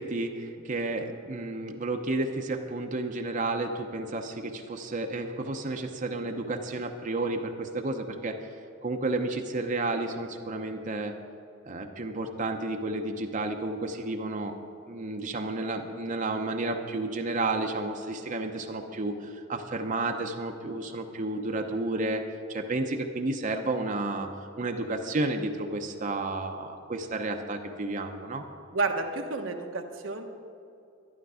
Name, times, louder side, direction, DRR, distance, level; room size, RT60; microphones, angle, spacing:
voice 1, 0.0-8.4 8.8-11.2 11.7-14.6 14.9-22.2 22.5-24.3 24.6-28.4, right 2 dB, 40° right, 4 dB, 0.8 m, -31 dB
voice 2, 28.7-30.2, right 3 dB, 80° right, 3 dB, 1.2 m, -30 dB
12.0 x 12.0 x 4.9 m, 2.6 s
head